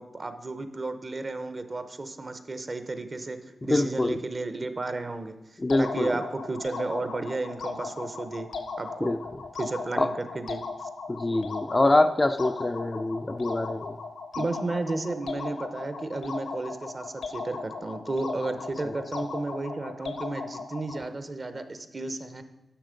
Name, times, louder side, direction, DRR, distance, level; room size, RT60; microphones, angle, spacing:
voice 1, 0.0-3.4 3.6-5.4 5.8-8.5 8.8-9.1 9.6-10.9 14.3-22.4, right 2 dB, 35° right, 9 dB, 0.8 m, -33 dB
voice 2, 3.6-4.2 5.6-6.1 9.0-9.2 10.0-10.1 11.1-14.0 18.9-19.0, left 2 dB, 20° left, 8 dB, 0.4 m, -25 dB
sound 1, 5.7-21.1, left 4 dB, 85° left, 1.0 m, -38 dB
10.0 x 6.6 x 5.1 m, 0.95 s
wide cardioid pair, 105°, 0 cm